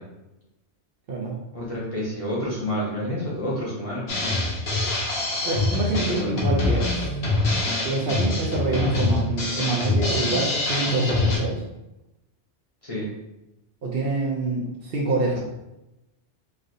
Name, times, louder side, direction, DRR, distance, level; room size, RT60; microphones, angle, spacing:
voice 1, 1.5-4.1 6.1-6.3 12.8-13.0, equal, 35° left, -7 dB, 0.8 m, -29 dB
Drum kit, 4.1-11.4, left 2 dB, 65° left, 1.1 m, -24 dB
voice 2, 5.4-7.1 7.8-11.6 13.8-15.4, right 3 dB, 60° right, -3 dB, 0.7 m, -26 dB
3.2 x 2.6 x 2.6 m, 0.94 s
omnidirectional pair, 1.2 m